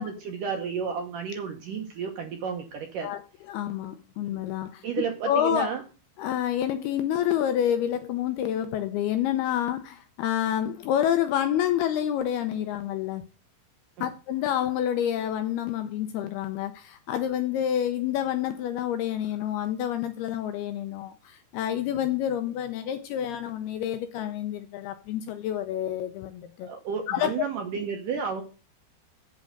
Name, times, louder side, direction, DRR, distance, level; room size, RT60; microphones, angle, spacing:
voice 1, 0.0-3.1 4.8-5.8 14.0-14.1 26.6-28.4, right 6 dB, 70° right, 2.1 m, -32 dB
voice 2, 3.5-4.9 5.3-5.7 6.2-13.2 14.0-26.7 27.1-27.3, left 10 dB, 80° left, 2.4 m, -28 dB
8.5 x 7.6 x 6.6 m
omnidirectional pair, 5.2 m